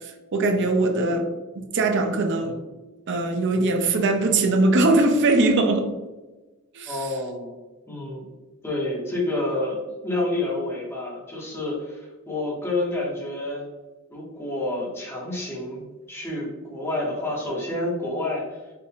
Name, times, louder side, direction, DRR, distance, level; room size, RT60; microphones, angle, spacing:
voice 1, 0.3-1.3 1.5-2.6 3.1-5.9 6.7-7.0, right 2 dB, 55° right, 0.5 m, -21 dB
voice 2, 6.8-7.5 7.9-8.3 8.6-9.8 10.0-13.6 14.1-18.6, left 2 dB, 10° left, 1.1 m, -29 dB
4.6 x 2.5 x 3.5 m
head